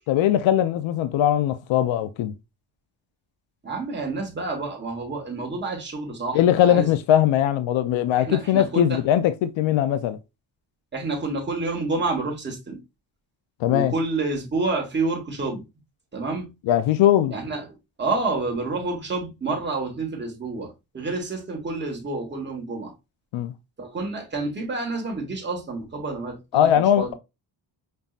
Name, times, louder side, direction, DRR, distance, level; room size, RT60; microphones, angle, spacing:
voice 1, 0.1-2.3 6.3-10.2 13.6-13.9 16.7-17.3 23.3-23.5 26.5-27.1, left 11 dB, 70° left, 0.5 m, -20 dB
voice 2, 3.6-6.9 8.3-9.0 10.9-12.8 13.7-15.6 16.1-16.5 17.3-17.7 18.0-22.9 23.8-27.1, right 3 dB, 25° right, 1.3 m, -29 dB
5.4 x 2.7 x 2.4 m
cardioid pair, 130°, 47 cm